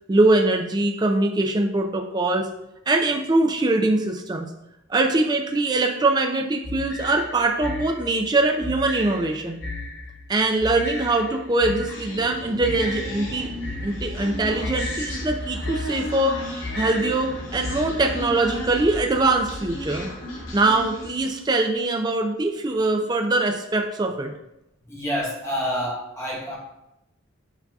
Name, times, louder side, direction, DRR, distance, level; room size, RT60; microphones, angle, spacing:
voice 1, 0.1-2.5 2.9-4.5 4.9-9.6 10.3-13.5 13.8-16.4 16.8-20.1 20.5-24.3, right 2 dB, 20° right, 4 dB, 0.3 m, -22 dB
sound 1, 6.6-18.3, left 2 dB, 50° left, 1.0 m, -35 dB
Human voice, 11.9-21.3, left 1 dB, 70° left, 1.2 m, -34 dB
voice 2, 24.9-26.6, equal, 15° left, -4 dB, 1.0 m, -28 dB
8.1 x 2.7 x 2.3 m, 0.89 s
head